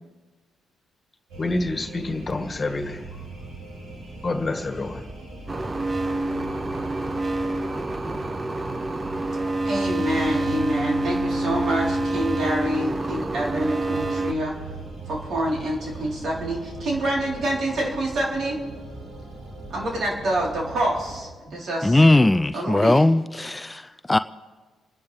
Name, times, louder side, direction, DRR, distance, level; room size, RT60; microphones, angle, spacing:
sound 1, 1.3-21.2, right 2 dB, 80° right, 6.1 m, -39 dB
voice 1, 1.4-3.0 4.2-5.1, left 2 dB, 35° left, 6 dB, 1.8 m, -27 dB
sound 2, 5.5-14.3, right 2 dB, 25° right, 0.8 m, -27 dB
voice 2, 9.6-14.5 15.1-18.6 19.7-22.0 22.5-23.1, right 1 dB, 65° right, -3 dB, 4.0 m, -27 dB
voice 3, 21.8-24.2, left 2 dB, 15° left, 13 dB, 0.4 m, -19 dB
30.0 x 10.5 x 3.4 m, 1.3 s
supercardioid pair, 65°, 0 cm